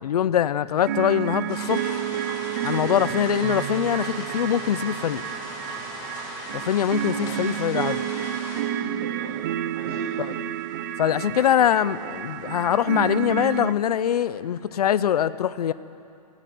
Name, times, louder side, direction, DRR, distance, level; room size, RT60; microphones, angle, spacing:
voice 1, 0.0-2.0 2.6-5.2 6.5-8.0 10.2-10.3 11.0-15.7, left 10 dB, 80° left, 16 dB, 0.7 m, -23 dB
sound 1, 0.8-13.7, right 11 dB, 30° right, 0.5 m, -30 dB
sound 2, 1.5-8.6, left 3 dB, 20° left, 5.2 m, -38 dB
voice 2, 7.0-7.4 7.9-8.0 8.4-10.2, right 1 dB, 80° right, -2 dB, 6.7 m, -41 dB
19.0 x 16.0 x 9.3 m, 2.7 s
hypercardioid pair, 165°, 20 cm